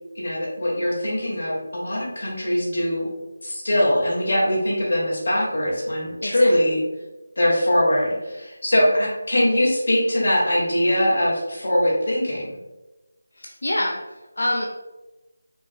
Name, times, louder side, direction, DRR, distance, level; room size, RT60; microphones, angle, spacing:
voice 1, 0.1-3.1 3.4-6.8 7.4-12.6, left 1 dB, 50° left, -4 dB, 1.5 m, -22 dB
voice 2, 13.4-14.7, left 1 dB, 85° left, -1 dB, 0.6 m, -26 dB
5.1 x 2.1 x 3.6 m, 1.1 s
figure-of-eight pair, 180°, 0 cm